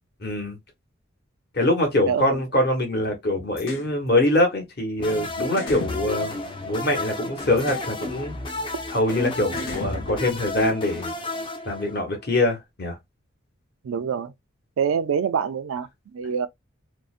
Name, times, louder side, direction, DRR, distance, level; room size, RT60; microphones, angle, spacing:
voice 1, 0.2-0.6 1.5-8.3 8.9-11.1 11.7-13.0, left 1 dB, 50° left, 1.0 m, -24 dB
voice 2, 2.1-2.4 13.8-14.3 14.8-16.5, right 7 dB, 80° right, 0.4 m, -26 dB
sound 1, 3.6-3.9 5.1-5.2 5.6-7.0 7.6-7.9 9.1-9.2 9.6-10.7, left 3 dB, 80° left, 0.6 m, -34 dB
sound 2, 5.0-12.3, left 2 dB, 25° left, 0.4 m, -33 dB
2.6 x 2.0 x 2.4 m
head